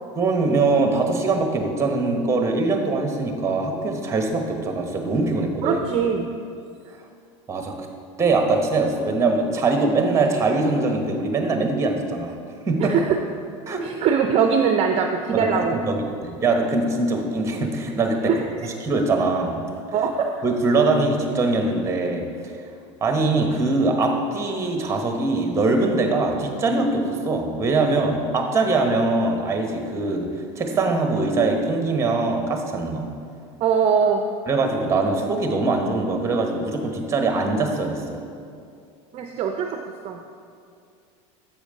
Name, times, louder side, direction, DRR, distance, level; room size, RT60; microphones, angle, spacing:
voice 1, 0.2-5.9 7.5-7.7 8.2-12.3 12.7-12.9 13.7-13.9 15.3-18.3 18.6-19.6 20.4-22.3 23.0-30.3 30.6-33.1 34.5-38.2, right 3 dB, 15° right, 4 dB, 1.0 m, -22 dB
voice 2, 5.6-6.3 12.8-13.2 13.8-15.8 18.3-18.4 19.9-20.3 33.6-34.2 39.1-40.2, right 6 dB, 40° right, 4 dB, 0.5 m, -21 dB
7.4 x 5.1 x 5.1 m, 2.4 s
supercardioid pair, 120°, 16 cm